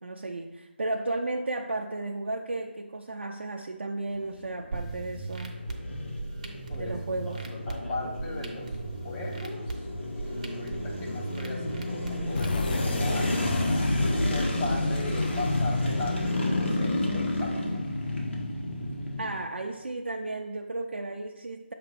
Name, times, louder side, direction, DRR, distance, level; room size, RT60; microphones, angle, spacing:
voice 1, 0.0-5.6 6.7-7.4 19.2-21.7, right 2 dB, 70° right, 2 dB, 0.5 m, -34 dB
sound 1, 4.0-19.3, left 1 dB, 80° left, 1.5 m, -31 dB
sound 2, 4.7-12.7, right 2 dB, 35° right, 0.7 m, -38 dB
voice 2, 7.7-8.7 9.0-13.5 14.0-17.8, left 2 dB, 15° left, -3 dB, 0.8 m, -38 dB
sound 3, 12.3-17.9, left 2 dB, 45° left, 0.4 m, -33 dB
6.7 x 2.9 x 5.1 m, 1.1 s
figure-of-eight pair, 160°, 6 cm